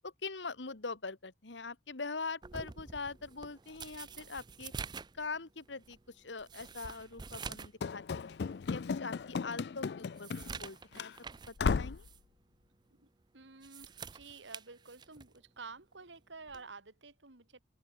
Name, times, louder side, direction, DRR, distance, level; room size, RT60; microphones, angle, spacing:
voice 1, 0.0-4.7 5.2-8.4 8.7-10.3 10.6-12.1, left 4 dB, 85° left, 1.6 m, -43 dB
sound 1, 2.4-7.8 8.2-8.3 8.8-8.9 9.4-11.6 12.0-12.2 13.4-15.4 16.5-16.7, right 5 dB, 25° right, 0.4 m, -47 dB
Run / Slam, 7.8-10.7 11.0-11.1 11.6-12.1, left 5 dB, 65° left, 0.4 m, -35 dB
voice 2, 13.3-17.6, right 4 dB, 90° right, 2.8 m, -51 dB
open air
head